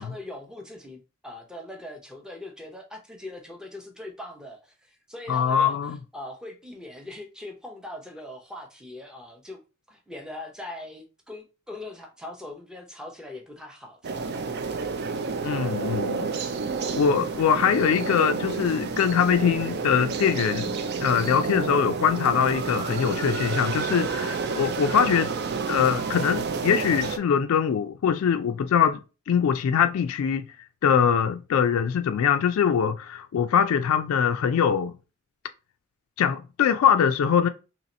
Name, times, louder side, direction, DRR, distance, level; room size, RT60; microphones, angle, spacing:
voice 1, 0.0-9.6 9.9-14.3, left 1 dB, 5° right, 0.6 m, -41 dB
voice 2, 5.3-6.0 15.4-16.3 16.9-20.7 21.0-25.3 25.7-29.0 29.3-30.4 30.8-34.9 36.2-37.5, left 7 dB, 75° left, 0.3 m, -22 dB
sound 1, 14.0-27.2, right 5 dB, 50° right, 0.4 m, -30 dB
2.9 x 2.7 x 4.1 m
head